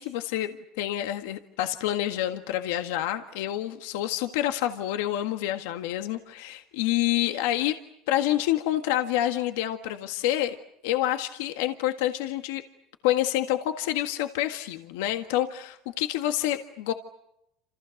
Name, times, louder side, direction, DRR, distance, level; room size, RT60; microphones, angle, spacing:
voice 1, 0.0-7.8 8.1-10.6 10.8-12.6 13.0-16.9, left 13 dB, 90° left, 6 dB, 1.7 m, -28 dB
29.5 x 27.5 x 6.6 m, 0.82 s
cardioid pair, 130°, 0 cm